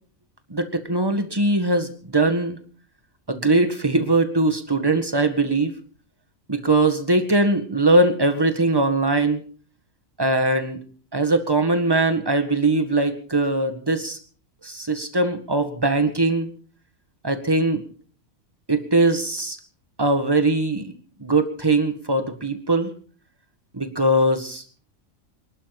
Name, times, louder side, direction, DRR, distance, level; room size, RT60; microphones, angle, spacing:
voice 1, 0.5-2.6 3.3-5.7 6.5-9.4 10.2-10.8 11.1-14.2 14.6-16.5 17.2-17.8 18.7-19.6 20.0-20.9 21.2-22.9 23.7-24.6, right 2 dB, 15° right, 8 dB, 1.8 m, -21 dB
26.5 x 12.0 x 4.1 m, 0.43 s
omnidirectional pair, 1.4 m